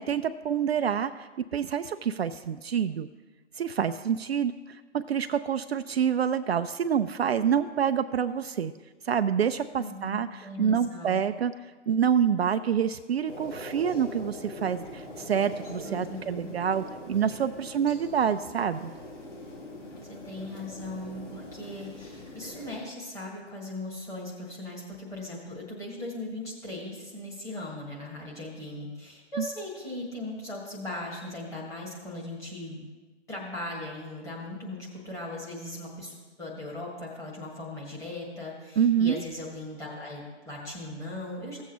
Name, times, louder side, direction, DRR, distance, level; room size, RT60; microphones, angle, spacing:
voice 1, 0.0-3.1 3.6-8.7 9.0-11.5 11.9-18.9 38.8-39.2, right 8 dB, 60° right, 10 dB, 0.5 m, -27 dB
voice 2, 9.8-11.2 15.8-16.6 20.1-32.8 33.3-41.6, left 1 dB, 10° left, -5 dB, 1.6 m, -38 dB
sound 1, 13.3-22.8, left 1 dB, 85° left, 2.1 m, -42 dB
16.0 x 7.3 x 3.0 m, 1.3 s
hypercardioid pair, 150°, 35 cm